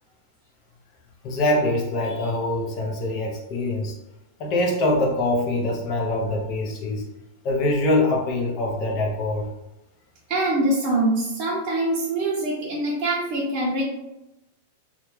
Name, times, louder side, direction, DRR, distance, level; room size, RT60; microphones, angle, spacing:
voice 1, 1.2-4.0 4.4-7.0 7.4-9.5, left 1 dB, 35° left, -1 dB, 0.6 m, -24 dB
voice 2, 10.3-13.8, right 1 dB, 35° right, -6 dB, 0.6 m, -24 dB
2.5 x 2.2 x 3.0 m, 0.94 s
supercardioid pair, 155°, 0 cm